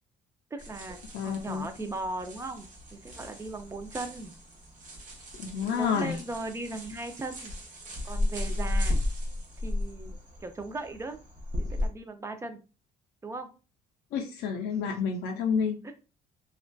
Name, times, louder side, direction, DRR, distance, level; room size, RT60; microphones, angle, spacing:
voice 1, 0.5-4.3 5.7-7.5 8.0-9.0 9.6-10.1 10.4-11.2 11.6-12.6 13.2-13.5 14.5-15.1 15.8-15.9, right 2 dB, 15° right, 7 dB, 0.4 m, -38 dB
sound 1, 0.6-11.9, left 1 dB, 50° right, 0.8 m, -35 dB
voice 2, 1.1-1.7 5.3-6.2 14.1-15.8, left 6 dB, 75° left, 2 dB, 0.4 m, -29 dB
2.5 x 2.2 x 2.2 m, 0.32 s
cardioid pair, 110°, 17 cm